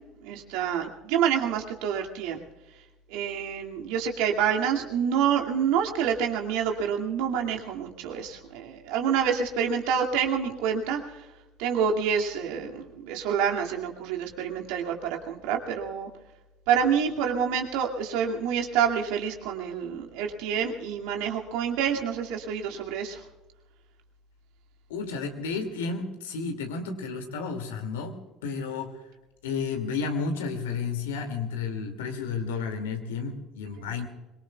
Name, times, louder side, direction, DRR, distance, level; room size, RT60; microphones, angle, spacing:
voice 1, 0.2-2.4 3.1-11.0 11.6-15.0 15.3-16.1 16.7-23.2, right 7 dB, 65° right, 1 dB, 2.3 m, -27 dB
voice 2, 24.9-29.0 29.4-34.1, left 5 dB, 75° left, 5 dB, 2.4 m, -32 dB
24.5 x 22.5 x 2.4 m, 1.1 s
figure-of-eight pair, 60°, 0 cm